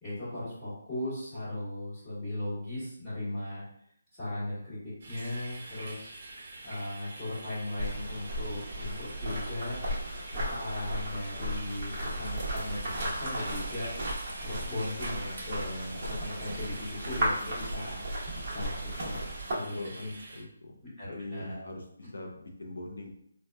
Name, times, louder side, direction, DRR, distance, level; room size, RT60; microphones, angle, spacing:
voice 1, 0.0-3.6 4.1-6.1 6.6-9.8 10.3-13.9 14.4-18.0 18.5-19.2 19.5-20.1 21.0-21.7, left 1 dB, 10° left, -13 dB, 1.3 m, -37 dB
sound 1, 5.0-20.4, right 2 dB, 40° right, 0.7 m, -46 dB
sound 2, 7.8-19.5, right 1 dB, 15° right, 1.1 m, -35 dB
voice 2, 19.6-20.7 21.1-23.1, left 2 dB, 75° left, 1 dB, 0.6 m, -42 dB
4.2 x 2.1 x 2.2 m, 0.71 s
hypercardioid pair, 175°, 0 cm